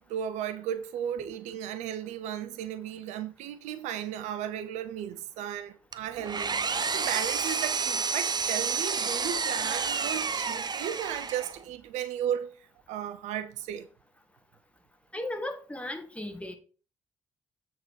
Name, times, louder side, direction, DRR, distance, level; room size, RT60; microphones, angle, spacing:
voice 1, 0.0-6.6 6.9-13.9, right 10 dB, 75° right, 0.6 m, -35 dB
Engine, 5.9-11.6, right 5 dB, 35° right, 0.6 m, -30 dB
voice 2, 15.1-16.5, left 1 dB, 10° left, 1.8 m, -36 dB
7.7 x 4.5 x 4.7 m
hypercardioid pair, 40°, 12 cm